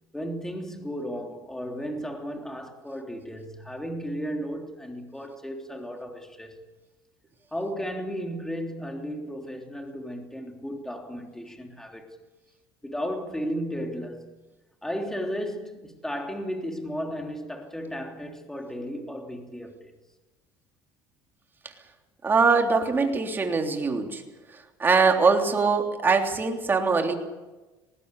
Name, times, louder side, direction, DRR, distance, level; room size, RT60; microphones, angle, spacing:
voice 1, 0.1-6.6 7.5-12.1 12.8-14.3 14.8-19.9, equal, 5° left, 3.3 m, -34 dB
voice 2, 22.2-24.2 24.8-27.2, right 4 dB, 25° right, 3.4 m, -22 dB
19.5 x 19.0 x 8.4 m
supercardioid pair, 110°, 9 cm